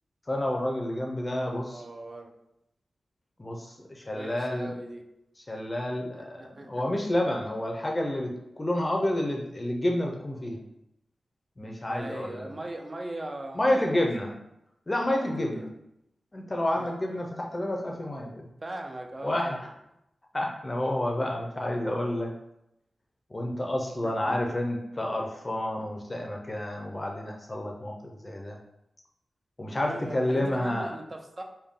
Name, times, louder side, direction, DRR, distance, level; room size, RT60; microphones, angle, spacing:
voice 1, 0.3-1.8 3.4-4.7 5.5-10.6 11.6-12.5 13.5-14.3 14.9-15.7 16.3-18.5 19.2-19.6 20.3-22.3 23.3-28.6 29.6-30.9, left 1 dB, 30° left, 1 dB, 0.5 m, -29 dB
voice 2, 1.4-2.3 4.1-5.1 6.1-6.9 11.9-14.1 15.2-15.7 16.8-17.3 18.6-19.7 21.6-21.7 24.0-24.6 29.7-31.4, right 1 dB, 35° right, 3 dB, 0.5 m, -40 dB
3.5 x 2.2 x 3.6 m, 0.83 s
cardioid pair, 55°, 0 cm